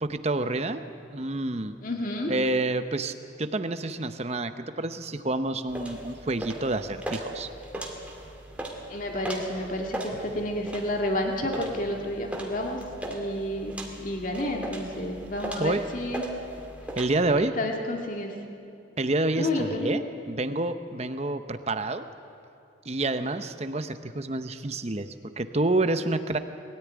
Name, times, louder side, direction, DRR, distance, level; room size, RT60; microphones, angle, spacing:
voice 1, 0.0-0.8 1.1-1.7 2.3-7.5 15.6-15.8 17.0-17.6 19.0-22.1 22.8-26.4, right 2 dB, 35° right, 10 dB, 0.8 m, -28 dB
voice 2, 1.8-2.3 8.9-16.3 17.6-18.3 19.4-20.0, left 1 dB, 45° left, 1 dB, 2.3 m, -30 dB
sound 1, 5.7-17.1, right 1 dB, 5° right, 2.2 m, -38 dB
21.0 x 14.0 x 9.5 m, 2.6 s
head